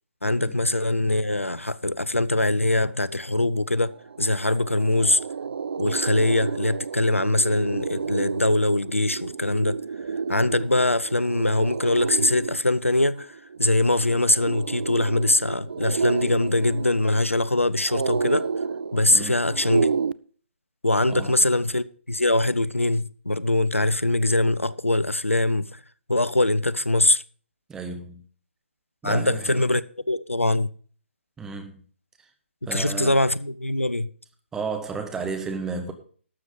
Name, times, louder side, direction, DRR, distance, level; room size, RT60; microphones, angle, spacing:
voice 1, 0.2-3.9 4.2-5.2 5.8-9.8 10.3-13.3 13.6-18.5 18.9-19.9 20.8-25.8 26.1-27.2 29.0-29.8 30.1-30.7 32.7-34.1, left 2 dB, 85° left, 0.6 m, -22 dB
sound 1, 3.6-3.7 3.9-20.1, right 5 dB, 55° right, 0.4 m, -31 dB
voice 2, 19.1-19.4 21.1-21.4 27.7-28.2 29.0-29.7 31.4-31.8 32.2-32.3 32.7-33.2 34.5-35.9, right 4 dB, 10° right, 1.2 m, -33 dB
12.5 x 7.7 x 5.1 m
figure-of-eight pair, 135°, 7 cm